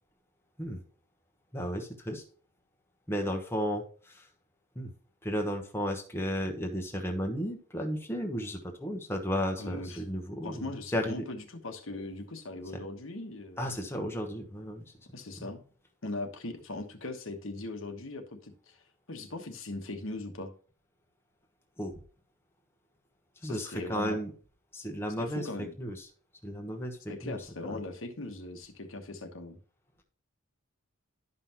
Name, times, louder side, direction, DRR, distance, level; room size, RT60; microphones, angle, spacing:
voice 1, 1.5-2.2 3.1-4.3 4.7-4.9 5.2-11.2 13.6-14.9 21.8-21.9 23.4-24.3 24.7-26.1 26.4-27.4 27.7-27.8, equal, 10° left, 2 dB, 1.0 m, -34 dB
voice 2, 9.6-10.0 10.4-13.7 15.1-15.6 16.0-18.8 19.1-20.5 23.4-24.2 25.2-25.7 27.1-29.6, left 2 dB, 60° left, 6 dB, 1.2 m, -39 dB
11.5 x 5.5 x 2.9 m, 0.42 s
head